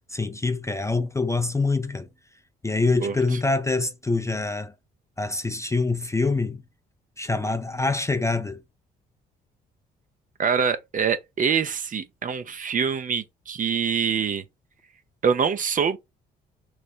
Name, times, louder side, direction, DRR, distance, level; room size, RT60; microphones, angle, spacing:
voice 1, 0.1-2.1 2.6-4.7 5.2-6.6 7.2-8.6, left 3 dB, 15° left, 0.4 m, -25 dB
voice 2, 10.4-14.4 15.2-16.0, right 6 dB, 40° right, 0.6 m, -25 dB
3.1 x 2.1 x 4.0 m
hypercardioid pair, 55°, 21 cm